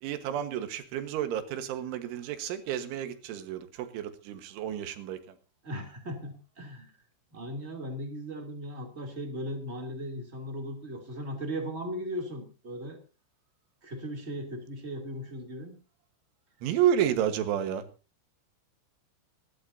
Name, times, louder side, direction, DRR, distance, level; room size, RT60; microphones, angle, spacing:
voice 1, 0.0-5.2 16.6-17.8, right 10 dB, 80° right, 9 dB, 3.8 m, -30 dB
voice 2, 5.6-6.9 7.3-13.0 13.8-15.7, equal, 20° right, 3 dB, 2.1 m, -37 dB
25.5 x 12.0 x 2.7 m, 0.33 s
omnidirectional pair, 5.5 m